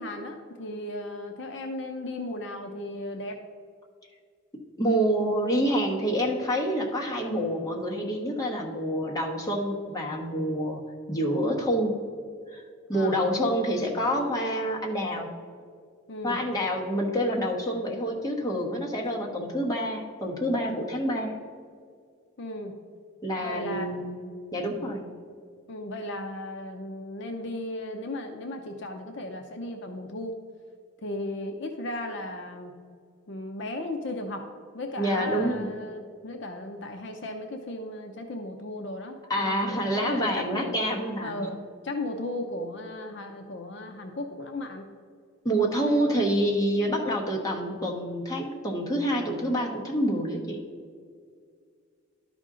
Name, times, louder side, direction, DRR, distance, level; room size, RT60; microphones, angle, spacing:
voice 1, 0.0-3.4 12.9-13.3 16.1-16.4 22.4-22.8 23.4-23.9 24.2-24.4 25.7-30.4 31.0-32.8 33.3-34.5 34.7-40.7 41.2-44.9 45.8-46.2, left 1 dB, 55° left, 4 dB, 0.6 m, -36 dB
voice 2, 4.5-10.8 11.1-12.0 12.5-12.6 12.9-15.3 16.2-21.4 23.2-24.1 24.5-25.1 35.0-35.7 39.3-41.5 45.4-50.6, equal, 15° left, -2 dB, 1.1 m, -27 dB
12.0 x 5.2 x 3.7 m, 2.1 s
head